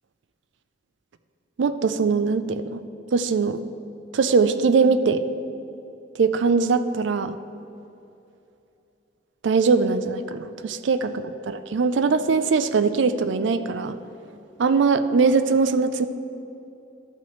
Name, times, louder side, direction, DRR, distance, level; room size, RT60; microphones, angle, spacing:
voice 1, 1.6-2.8 3.1-3.6 4.1-5.2 6.2-7.3 9.4-14.0 14.6-16.1, right 4 dB, 80° right, 11 dB, 0.4 m, -21 dB
13.0 x 5.6 x 3.1 m, 2.8 s
head